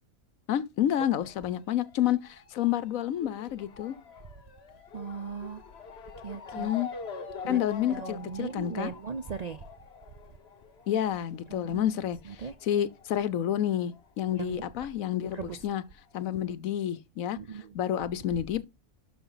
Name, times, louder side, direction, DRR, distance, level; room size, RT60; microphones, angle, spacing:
voice 1, 0.5-3.9 6.5-6.9 7.5-8.9 10.9-15.8 16.1-17.4 17.7-18.6, left 11 dB, 75° left, 1.2 m, -29 dB
Motor vehicle (road) / Siren, 1.1-14.1 14.3-15.5 16.2-16.3 16.5-16.6, left 5 dB, 50° left, 1.3 m, -45 dB
voice 2, 4.9-5.6 6.2-6.7 7.4-7.6 7.9-9.6 11.5-11.9 12.3-12.5 14.4-14.7 15.3-15.6 17.4-17.7, right 5 dB, 55° right, 0.4 m, -38 dB
11.5 x 5.7 x 3.9 m
omnidirectional pair, 1.4 m